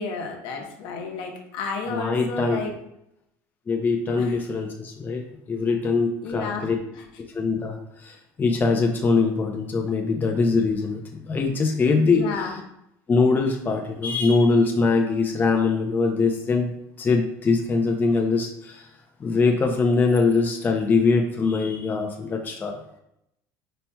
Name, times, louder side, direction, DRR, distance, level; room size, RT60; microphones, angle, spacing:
voice 1, 0.0-2.7 4.2-4.4 6.2-7.0 12.1-12.6, left 4 dB, 70° left, 2 dB, 0.9 m, -32 dB
voice 2, 1.9-2.6 3.7-6.8 7.3-7.8 8.0-12.2 13.1-16.7 17.0-18.8 19.2-22.8, left 4 dB, 20° left, 2 dB, 0.5 m, -22 dB
4.3 x 4.2 x 2.2 m, 0.79 s
supercardioid pair, 110°, 8 cm